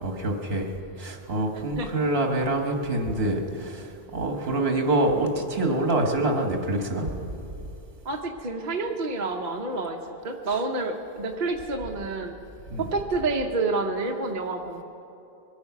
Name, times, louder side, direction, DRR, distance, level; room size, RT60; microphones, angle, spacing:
voice 1, 0.0-7.1 12.7-12.8, right 1 dB, 70° right, 3 dB, 1.7 m, -26 dB
voice 2, 8.0-12.3 12.8-14.8, right 3 dB, 50° right, 2 dB, 0.9 m, -29 dB
22.0 x 8.7 x 5.9 m, 2.8 s
omnidirectional pair, 1.1 m